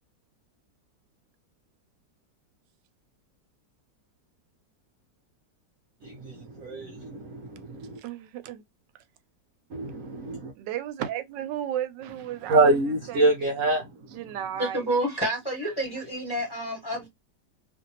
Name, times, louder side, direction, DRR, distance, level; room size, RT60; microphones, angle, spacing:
voice 1, 6.0-8.0 9.7-10.5 12.5-13.9, right 2 dB, 65° right, 0.9 m, -25 dB
voice 2, 8.0-8.6 8.9-9.0 10.6-12.7 13.1-13.3 14.1-14.9, right 11 dB, 85° right, 1.2 m, -34 dB
voice 3, 14.6-17.1, right 1 dB, 15° left, 1.1 m, -29 dB
2.9 x 2.6 x 2.7 m
omnidirectional pair, 1.9 m